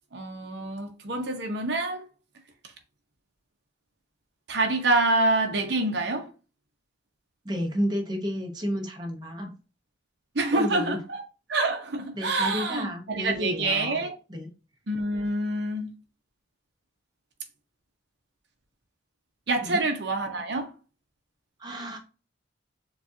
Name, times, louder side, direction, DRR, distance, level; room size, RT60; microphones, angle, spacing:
voice 1, 0.1-2.1 4.5-6.3 10.3-11.2 11.5-14.1 14.9-15.9 19.5-20.7, right 2 dB, 55° right, 0.7 m, -26 dB
voice 2, 7.4-9.5 10.5-11.0 12.1-14.0 14.3-14.5 19.6-19.9 21.6-22.0, equal, 20° right, 0.8 m, -31 dB
6.7 x 2.4 x 2.7 m
head